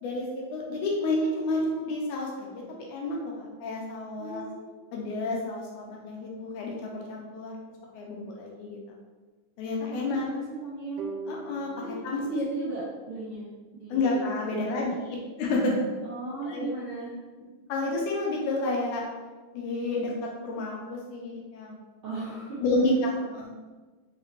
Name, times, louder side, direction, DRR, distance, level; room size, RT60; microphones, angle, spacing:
voice 1, 0.0-4.4 4.9-7.6 7.9-8.8 9.6-10.3 11.3-11.7 12.0-12.4 13.9-15.9 16.5-16.7 17.7-19.0 19.5-21.8 22.6-23.5, left 2 dB, 80° left, -2 dB, 2.1 m, -30 dB
voice 2, 4.2-4.8 9.9-11.1 11.8-13.5 13.7-14.2 14.5-15.0 16.0-17.2 22.0-22.6, right 3 dB, 70° right, -10 dB, 1.3 m, -36 dB
sound 1, 11.0-14.2, right 3 dB, 85° right, 2.1 m, -43 dB
5.3 x 2.9 x 2.9 m, 1.3 s
omnidirectional pair, 3.6 m